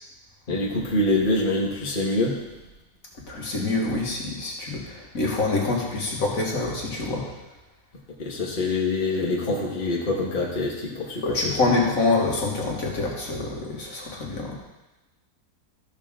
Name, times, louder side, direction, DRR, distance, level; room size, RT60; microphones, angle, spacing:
voice 1, 0.5-2.4 8.2-11.5, left 2 dB, 35° left, -3 dB, 1.5 m, -25 dB
voice 2, 3.3-7.3 11.2-14.6, left 3 dB, 55° left, -2 dB, 2.0 m, -26 dB
13.5 x 6.7 x 3.7 m, 1.1 s
omnidirectional pair, 1.8 m